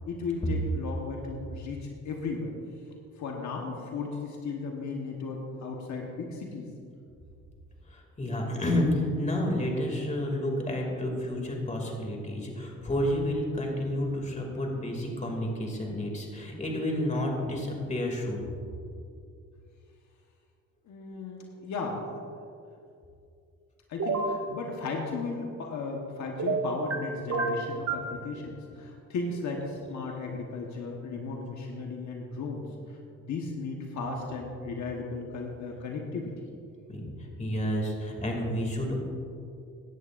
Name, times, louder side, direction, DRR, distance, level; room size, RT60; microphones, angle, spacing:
voice 1, 0.1-2.6 3.2-6.7 20.9-22.2 23.9-36.5, left 3 dB, 70° left, 1 dB, 1.3 m, -35 dB
voice 2, 7.9-18.5 36.9-37.0 37.4-39.0, left 1 dB, 25° left, 0 dB, 2.5 m, -30 dB
sound 1, 24.0-24.4 26.4-27.0 27.3-28.1, right 3 dB, 55° right, 1.7 m, -28 dB
16.5 x 11.0 x 2.6 m, 2.5 s
cardioid pair, 90°, 30 cm